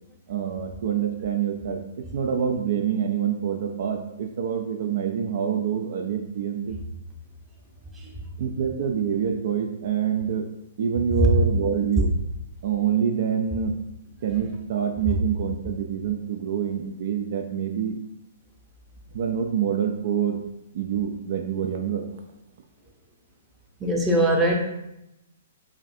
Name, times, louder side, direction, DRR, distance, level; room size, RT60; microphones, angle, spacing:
voice 1, 0.3-1.8 2.1-6.8 8.4-10.5 10.8-12.1 12.6-13.8 14.2-18.0 19.1-20.4 20.7-22.2, right 8 dB, 60° right, 4 dB, 0.3 m, -26 dB
voice 2, 23.8-24.6, right 1 dB, 15° right, 0 dB, 0.7 m, -21 dB
5.0 x 2.5 x 2.7 m, 0.88 s
hypercardioid pair, 135°, 0 cm